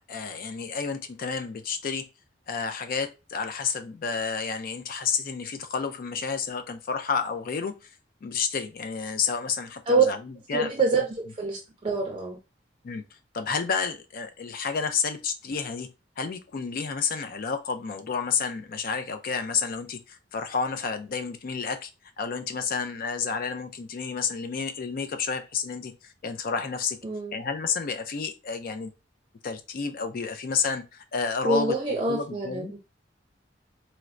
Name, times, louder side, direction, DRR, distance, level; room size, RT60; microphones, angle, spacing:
voice 1, 0.0-2.0 2.5-7.9 8.2-10.7 12.8-13.0 13.3-15.9 16.2-21.9 22.2-25.9 26.2-27.0 27.3-28.9 29.4-32.7, left 5 dB, 55° left, 8 dB, 0.4 m, -30 dB
voice 2, 10.5-11.0 11.4-12.4 27.0-27.4 31.4-32.8, right 3 dB, 30° right, 0 dB, 0.5 m, -25 dB
4.3 x 2.0 x 2.4 m, 0.28 s
head